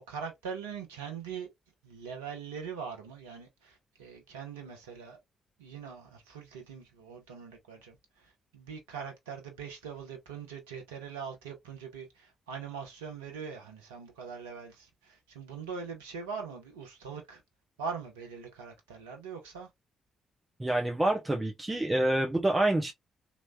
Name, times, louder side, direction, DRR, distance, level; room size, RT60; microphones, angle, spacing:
voice 1, 0.1-1.5 1.8-5.2 5.6-17.4 17.8-19.7, right 6 dB, 90° right, 0.7 m, -42 dB
voice 2, 20.6-22.9, right 1 dB, 20° right, 1.1 m, -27 dB
3.1 x 3.1 x 2.3 m
hypercardioid pair, 40°, 0 cm